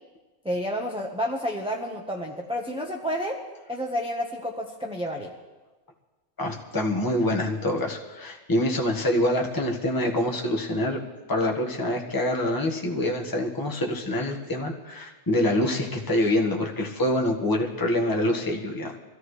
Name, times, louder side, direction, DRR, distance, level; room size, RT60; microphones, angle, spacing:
voice 1, 0.4-3.4 3.7-5.3, equal, 5° right, -1 dB, 0.9 m, -30 dB
voice 2, 6.4-11.0 11.3-19.0, left 1 dB, 15° left, -1 dB, 1.4 m, -25 dB
23.5 x 14.5 x 3.2 m, 1.2 s
omnidirectional pair, 1.4 m